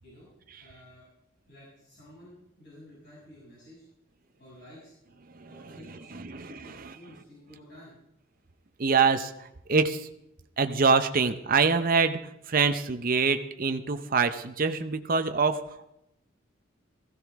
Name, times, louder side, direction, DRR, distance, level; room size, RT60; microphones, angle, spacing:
voice 1, 0.6-1.1 1.4-3.8 4.4-5.1 5.5-8.0, equal, 60° left, -8 dB, 7.0 m, -51 dB
voice 2, 6.1-6.5 8.8-10.1 10.6-15.6, right 5 dB, 45° right, 8 dB, 0.7 m, -25 dB
16.0 x 15.0 x 3.6 m, 0.84 s
head